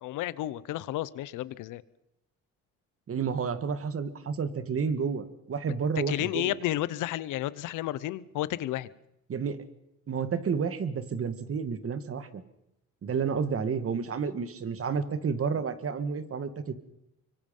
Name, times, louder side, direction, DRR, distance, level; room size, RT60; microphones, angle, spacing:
voice 1, 0.0-1.8 6.1-8.9, left 14 dB, 90° left, 19 dB, 0.9 m, -32 dB
voice 2, 3.1-6.5 9.3-9.6 10.1-12.4 13.0-16.7, right 6 dB, 50° right, 12 dB, 2.0 m, -30 dB
24.5 x 24.5 x 5.5 m, 0.85 s
cardioid pair, 90°, 30 cm